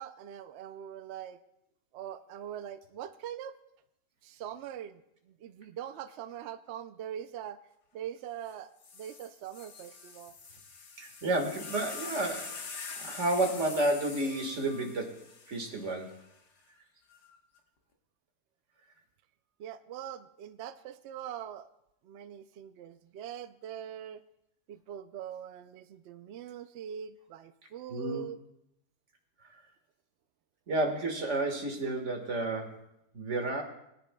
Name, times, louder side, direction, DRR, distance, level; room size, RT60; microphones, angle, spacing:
voice 1, 0.0-1.4 1.9-3.6 4.2-7.6 7.9-10.3 19.6-21.7 22.0-24.2 24.7-28.4, right 10 dB, 80° right, 11 dB, 0.6 m, -42 dB
sound 1, 8.5-8.6 8.8-16.2 17.1-17.6, left 5 dB, 85° left, 1.9 m, -45 dB
voice 2, 11.0-12.6 13.0-15.2 15.5-16.2 27.9-28.3 29.4-29.6 30.7-32.8 33.1-33.6, right 2 dB, 45° right, 3 dB, 1.9 m, -31 dB
23.0 x 10.5 x 2.2 m, 0.81 s
omnidirectional pair, 1.7 m